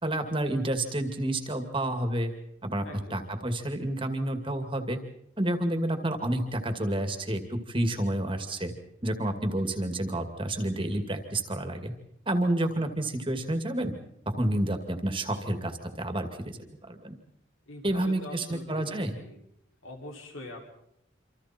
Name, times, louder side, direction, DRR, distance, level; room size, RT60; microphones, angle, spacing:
voice 1, 0.0-2.3 2.6-5.0 5.4-8.7 9.0-11.9 12.3-13.9 14.3-17.2 17.8-19.1, right 1 dB, 25° right, 6 dB, 2.3 m, -29 dB
voice 2, 2.8-3.2 17.7-19.4 19.8-20.7, left 1 dB, 85° left, 1 dB, 5.8 m, -43 dB
27.5 x 26.5 x 4.5 m, 0.75 s
head